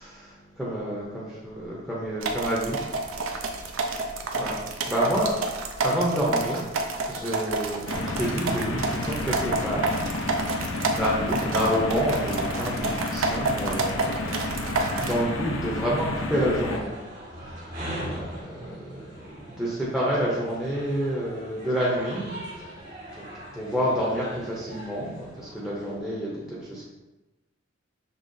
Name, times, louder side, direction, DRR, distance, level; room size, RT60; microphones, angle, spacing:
voice 1, 0.0-2.8 3.3-3.6 4.4-4.6 4.8-5.3 5.8-6.6 7.1-10.1 10.9-16.9 18.0-22.8 23.1-23.3 23.5-26.8, equal, ahead, -6 dB, 0.6 m, -29 dB
sound 1, 2.2-15.2, right 3 dB, 75° right, 0.5 m, -29 dB
sound 2, 7.9-16.8, left 2 dB, 70° left, 0.5 m, -31 dB
sound 3, 14.7-25.9, right 1 dB, 45° right, 1.4 m, -41 dB
5.4 x 2.8 x 2.7 m, 1.1 s
head